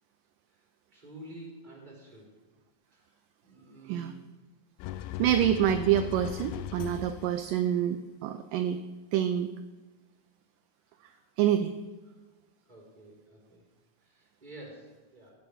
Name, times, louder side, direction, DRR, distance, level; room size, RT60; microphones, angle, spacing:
voice 1, 0.9-2.3 2.8-3.2 3.4-4.3 10.8-11.2 12.6-13.6 14.0-15.3, right 1 dB, 10° right, -2 dB, 3.5 m, -50 dB
sound 1, 4.8-7.5, left 12 dB, 85° left, 2.4 m, -38 dB
voice 2, 5.2-8.8 9.1-9.5 11.4-11.7, right 10 dB, 80° right, 9 dB, 2.1 m, -27 dB
16.0 x 7.1 x 6.3 m, 1.3 s
omnidirectional pair, 4.1 m